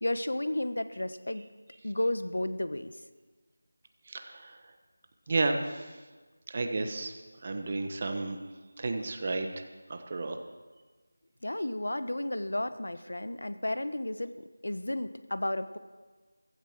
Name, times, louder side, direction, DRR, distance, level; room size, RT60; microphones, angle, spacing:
voice 1, 0.0-1.4 1.8-2.9 11.4-14.3 14.6-15.8, left 1 dB, 90° left, 12 dB, 1.1 m, -32 dB
voice 2, 4.1-4.6 5.3-5.9 6.5-7.1 7.4-8.4 8.8-9.6 9.9-10.4, right 3 dB, 30° right, 6 dB, 1.1 m, -32 dB
15.5 x 15.0 x 6.0 m, 1.3 s
figure-of-eight pair, 175°, 0 cm